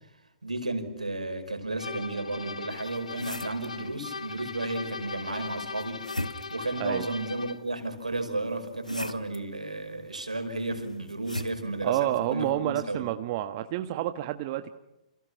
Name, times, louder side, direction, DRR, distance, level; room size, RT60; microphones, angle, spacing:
voice 1, 0.4-13.0, right 2 dB, 80° right, 7 dB, 5.4 m, -33 dB
sound 1, 1.8-7.7, left 4 dB, 70° left, 1.4 m, -40 dB
sound 2, 2.7-3.7 5.4-6.7 8.1-9.4 10.7-11.6, left 1 dB, 90° left, 1.5 m, -38 dB
voice 2, 11.8-14.7, right 14 dB, 35° right, 9 dB, 1.3 m, -29 dB
29.5 x 29.0 x 6.1 m, 0.93 s
figure-of-eight pair, 120°, 4 cm